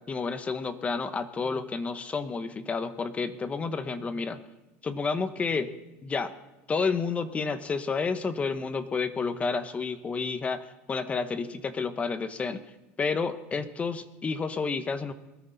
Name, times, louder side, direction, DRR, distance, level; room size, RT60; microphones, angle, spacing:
voice 1, 0.1-4.4 4.8-5.7 6.0-6.3 6.7-12.6 13.0-15.1, left 4 dB, 20° left, 11 dB, 1.0 m, -30 dB
21.0 x 13.5 x 4.1 m, 1.0 s
supercardioid pair, 125°, 6 cm